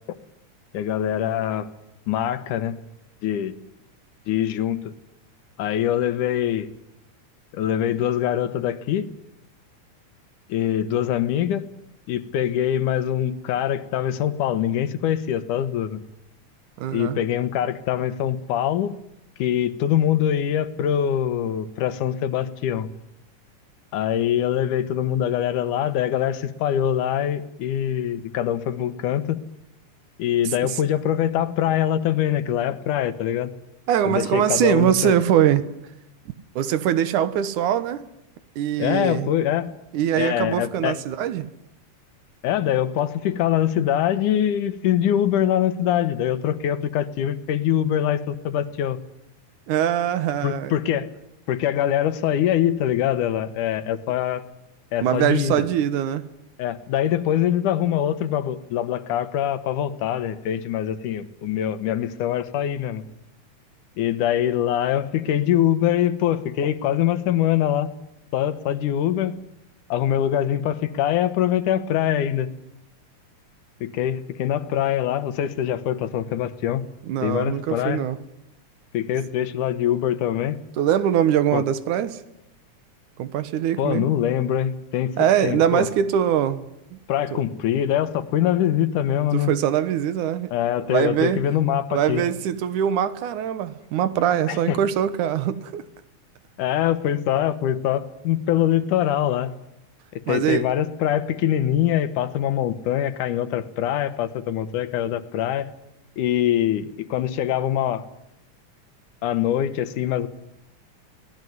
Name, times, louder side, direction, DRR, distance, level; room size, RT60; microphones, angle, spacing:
voice 1, 0.7-1.7 2.1-2.8 3.2-3.5 4.3-4.9 5.6-6.7 7.5-9.1 10.5-11.7 12.1-16.0 16.9-18.9 19.4-22.9 23.9-29.4 30.2-33.5 34.0-35.1 38.8-39.7 40.2-41.0 42.4-49.0 50.4-51.1 51.5-54.4 54.9-55.7 56.6-63.0 64.0-67.9 68.3-69.4 69.9-72.5 73.8-76.8 77.2-78.0 78.9-80.6 81.5-81.6 83.8-85.9 87.1-89.5 90.5-92.2 94.5-94.8 96.6-99.5 100.1-105.7 106.2-108.0 109.2-110.3, left 11 dB, 85° left, 2.7 m, -23 dB
voice 2, 16.8-17.2 30.6-30.8 33.9-35.6 36.3-38.0 38.6-39.3 39.9-41.5 49.7-50.7 55.0-56.3 77.0-78.2 80.8-82.2 83.2-84.1 85.2-87.0 87.3-87.4 89.3-90.5 90.8-91.4 91.9-95.8 100.3-100.7, right 10 dB, 85° right, 2.7 m, -22 dB
24.0 x 18.0 x 9.4 m
omnidirectional pair, 3.5 m